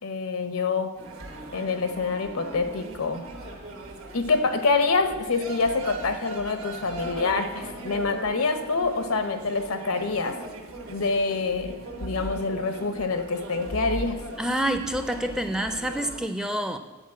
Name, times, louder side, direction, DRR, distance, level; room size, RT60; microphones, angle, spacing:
voice 1, 0.0-1.0 1.5-3.3 4.1-10.4 10.9-14.2, left 4 dB, 85° left, 9 dB, 0.8 m, -26 dB
sound 1, 0.9-16.2, right 1 dB, 80° right, 1.4 m, -39 dB
voice 2, 14.4-16.8, right 1 dB, 5° right, 8 dB, 0.4 m, -27 dB
10.0 x 4.3 x 7.5 m, 1.2 s
head